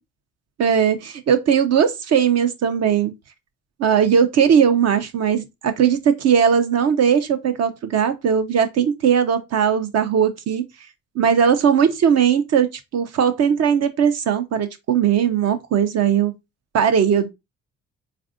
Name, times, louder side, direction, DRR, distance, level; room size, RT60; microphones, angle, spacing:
voice 1, 0.6-3.1 3.8-10.6 11.2-16.3 16.7-17.3, right 7 dB, 60° right, 0.5 m, -18 dB
3.3 x 2.5 x 2.4 m
supercardioid pair, 65°, 30 cm